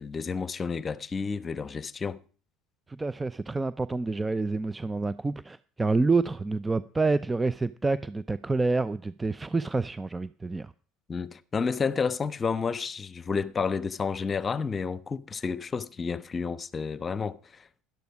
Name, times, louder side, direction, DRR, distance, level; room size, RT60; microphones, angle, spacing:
voice 1, 0.0-2.2 11.1-17.8, left 5 dB, 30° left, 1.0 m, -31 dB
voice 2, 2.9-10.7, right 3 dB, 15° right, 0.6 m, -28 dB
12.5 x 12.0 x 4.9 m
hypercardioid pair, 70°, 0 cm